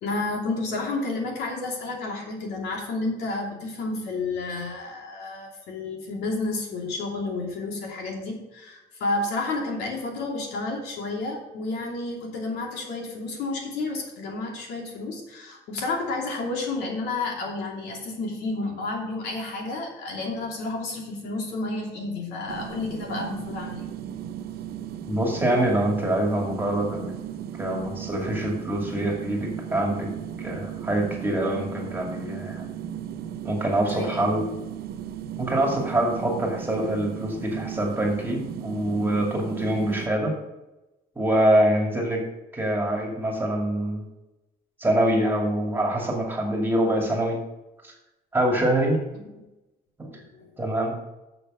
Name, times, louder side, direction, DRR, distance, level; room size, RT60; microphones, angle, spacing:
voice 1, 0.0-23.8 33.8-34.3 50.1-50.7, left 2 dB, 80° left, 0 dB, 2.7 m, -31 dB
sound 1, 22.5-40.1, right 9 dB, 70° right, 0.7 m, -36 dB
voice 2, 25.1-27.1 27.6-30.1 30.4-32.7 33.4-34.4 35.4-40.3 41.2-42.2 42.5-44.1 44.8-47.4 47.8-47.9 48.3-49.0 50.0-50.1 50.6-50.9, right 1 dB, 15° right, 0 dB, 2.5 m, -25 dB
6.9 x 6.7 x 6.4 m, 0.99 s
cardioid pair, 110°, 17 cm